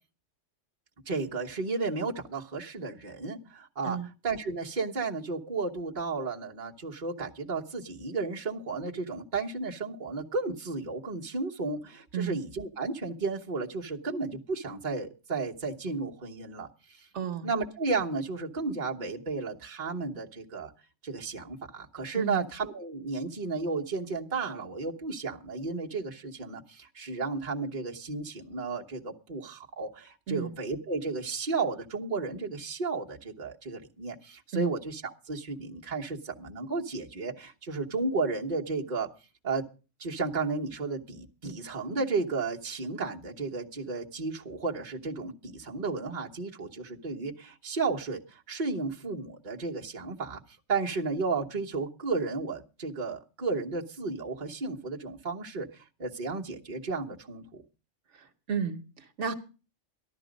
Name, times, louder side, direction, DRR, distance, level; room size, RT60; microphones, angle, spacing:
voice 1, 1.1-4.0 4.2-17.1 17.4-20.7 21.0-39.1 39.4-39.6 40.0-50.4 50.7-57.6, right 4 dB, 40° right, 1.3 m, -33 dB
voice 2, 17.1-17.5 22.1-22.4 30.3-30.5 34.5-34.7 58.1-59.3, right 7 dB, 75° right, 1.3 m, -33 dB
14.0 x 12.0 x 5.2 m
omnidirectional pair, 1.2 m